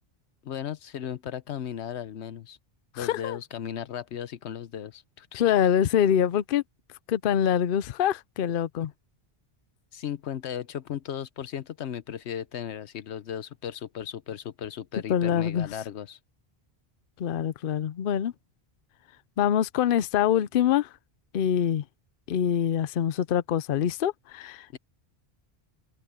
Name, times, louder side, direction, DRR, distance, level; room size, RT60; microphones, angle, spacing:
voice 1, 0.4-2.6 2.9-5.6 8.8-8.9 9.9-16.2 24.7-24.8, left 9 dB, 85° left, 1.1 m, -36 dB
voice 2, 3.0-3.4 5.3-6.6 7.1-8.9 15.1-15.7 17.2-18.3 19.4-20.9 21.3-21.8 22.3-24.8, left 9 dB, 60° left, 0.7 m, -25 dB
omnidirectional pair, 1.1 m